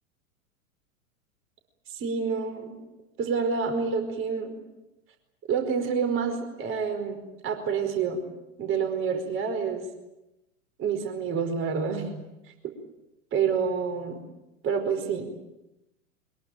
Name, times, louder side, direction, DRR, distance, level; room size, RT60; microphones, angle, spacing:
voice 1, 1.9-2.7 3.2-4.5 5.5-8.2 8.6-9.8 10.8-12.2 13.3-14.2 14.6-15.3, right 6 dB, 30° right, 6 dB, 4.9 m, -28 dB
23.5 x 22.0 x 9.1 m, 0.94 s
figure-of-eight pair, 100°, 43 cm